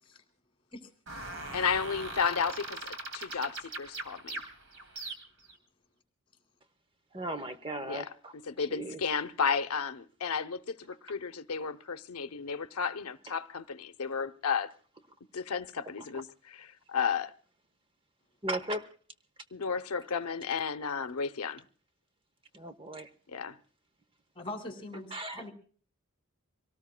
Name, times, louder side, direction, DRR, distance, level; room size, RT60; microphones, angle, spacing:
sound 1, 1.1-5.5, right 2 dB, 60° right, 2.4 m, -40 dB
voice 1, 1.5-4.4 7.9-14.7 15.3-17.3 19.5-21.6 23.3-23.6, left 6 dB, 85° left, 0.7 m, -33 dB
voice 2, 7.1-9.0 18.4-18.9 22.5-23.1 25.1-25.4, right 1 dB, 25° right, 0.8 m, -37 dB
voice 3, 24.3-25.5, left 2 dB, 25° left, 2.4 m, -42 dB
25.0 x 18.0 x 2.2 m
head